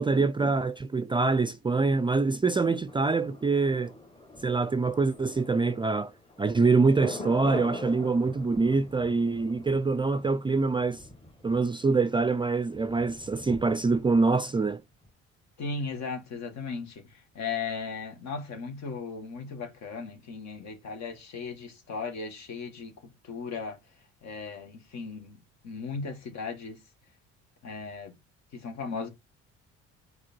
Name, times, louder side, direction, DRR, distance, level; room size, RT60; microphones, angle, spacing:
voice 1, 0.0-3.9 4.4-6.1 6.4-11.0 11.4-14.8, right 4 dB, 15° right, 0.4 m, -25 dB
Thunder, 2.9-14.7 15.0-15.1, left 2 dB, 20° left, 1.5 m, -44 dB
voice 2, 15.6-23.8 24.2-26.8 27.6-28.1 28.5-29.1, left 4 dB, 60° left, 2.0 m, -37 dB
4.9 x 4.5 x 4.4 m
supercardioid pair, 70°, 30 cm